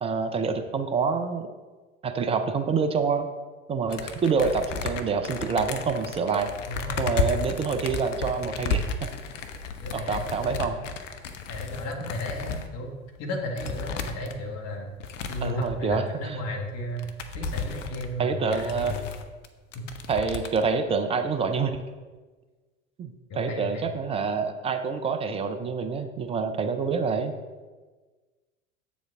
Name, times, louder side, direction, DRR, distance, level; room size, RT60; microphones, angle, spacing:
voice 1, 0.0-1.5 2.0-3.3 3.7-6.5 7.0-9.1 9.9-10.8 15.4-16.4 18.2-18.9 20.1-21.8 23.0-27.3, right 5 dB, 15° right, 8 dB, 0.4 m, -27 dB
sound 1, 3.9-12.7 13.2-13.3 13.6-14.4 15.0-16.0 16.5-16.6 16.8-19.5 19.7-20.7, left 4 dB, 65° left, 0.8 m, -33 dB
voice 2, 6.6-7.3 9.8-10.8 11.5-12.9 13.2-15.0 15.3-19.1 19.7-19.9 23.3-23.9, left 1 dB, 40° left, 1 dB, 1.7 m, -34 dB
7.7 x 7.1 x 3.6 m, 1.3 s
figure-of-eight pair, 80°, 40 cm